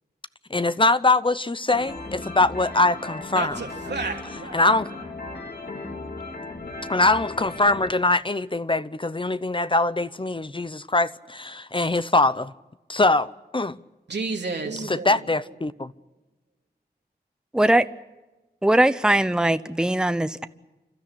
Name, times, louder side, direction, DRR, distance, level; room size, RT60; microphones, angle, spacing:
voice 1, 0.5-3.6 4.5-4.9 6.9-12.5 12.9-13.8 14.9-15.9, left 2 dB, 30° left, 0.7 m, -22 dB
sound 1, 1.7-7.9, left 3 dB, 70° left, 3.8 m, -36 dB
voice 2, 3.3-4.6 14.1-15.2, right 4 dB, 85° right, 3.0 m, -31 dB
voice 3, 17.5-17.8 18.6-20.5, right 1 dB, 5° right, 0.8 m, -20 dB
30.0 x 13.0 x 9.8 m
wide cardioid pair, 55°, 17 cm